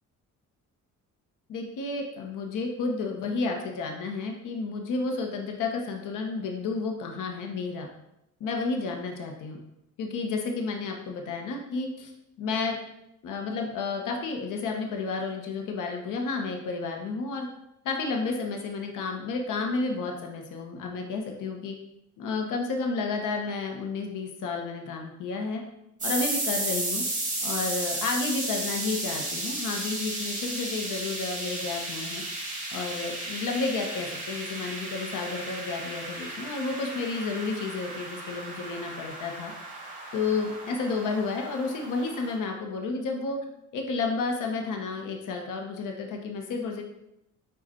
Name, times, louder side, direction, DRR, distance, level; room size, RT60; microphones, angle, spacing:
voice 1, 1.5-7.9 8.4-9.6 10.0-12.1 12.4-12.8 13.2-17.5 17.8-21.8 22.2-25.6 26.0-27.0 27.4-32.2 32.7-39.5 40.1-43.4 43.7-46.8, left 4 dB, 70° left, 2 dB, 0.9 m, -31 dB
sound 1, 26.0-42.4, right 2 dB, 25° right, 1.6 m, -34 dB
5.0 x 2.5 x 4.2 m, 0.83 s
cardioid pair, 100°, 32 cm